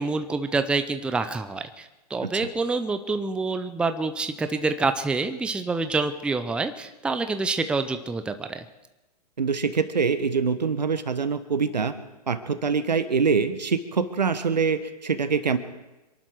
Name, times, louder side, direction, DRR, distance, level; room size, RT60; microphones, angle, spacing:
voice 1, 0.0-8.6, right 3 dB, 5° right, 9 dB, 0.6 m, -27 dB
voice 2, 9.4-11.9 12.3-15.6, right 5 dB, 80° right, 12 dB, 1.3 m, -24 dB
26.5 x 11.5 x 4.7 m, 1.0 s
figure-of-eight pair, 125°, 21 cm